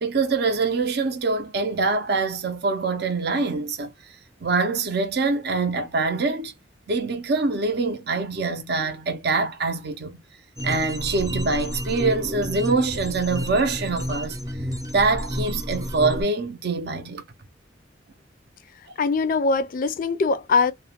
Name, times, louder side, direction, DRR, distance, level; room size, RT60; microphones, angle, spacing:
voice 1, 0.0-3.9 4.4-6.5 6.9-10.2 10.6-14.4 14.9-17.2, right 3 dB, 60° right, 0.6 m, -24 dB
sound 1, 10.6-16.2, equal, 20° right, 0.5 m, -30 dB
voice 2, 19.0-20.7, left 4 dB, 45° left, 0.3 m, -22 dB
2.3 x 2.1 x 2.8 m
head